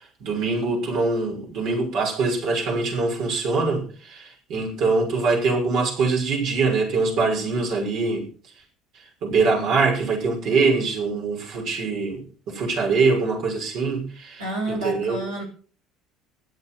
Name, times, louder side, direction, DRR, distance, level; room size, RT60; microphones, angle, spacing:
voice 1, 0.2-8.3 9.2-15.2, right 4 dB, 60° right, 6.1 m, -23 dB
voice 2, 14.4-15.4, right 2 dB, 90° right, 5.6 m, -29 dB
15.5 x 11.5 x 5.7 m
hypercardioid pair, 65°, 0 cm